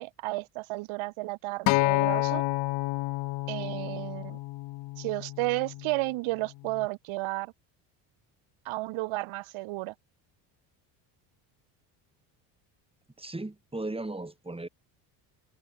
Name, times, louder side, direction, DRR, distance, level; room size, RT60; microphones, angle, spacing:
voice 1, 0.0-2.4 3.5-4.4 5.0-7.5 8.6-9.9, right 21 dB, 75° right, 4.8 m, -32 dB
Acoustic guitar, 1.7-5.9 6.7-6.9, left 21 dB, 65° left, 0.8 m, -29 dB
voice 2, 13.2-14.7, right 2 dB, 10° right, 6.8 m, -36 dB
supercardioid pair, 80°, 48 cm